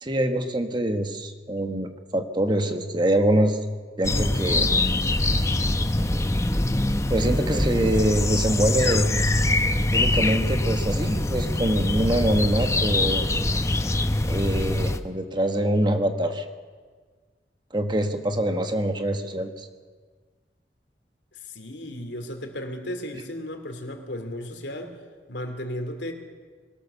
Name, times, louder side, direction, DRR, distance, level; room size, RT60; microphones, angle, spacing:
voice 1, 0.0-3.6 4.0-4.7 7.1-9.1 9.9-13.3 14.2-16.4 17.7-19.7, right 1 dB, 25° right, 6 dB, 1.4 m, -24 dB
sound 1, 4.0-15.0, left 2 dB, 15° left, 0.8 m, -23 dB
voice 2, 21.5-24.9 25.3-26.1, left 1 dB, 85° left, 5 dB, 2.8 m, -34 dB
22.0 x 18.0 x 7.0 m, 1.5 s
head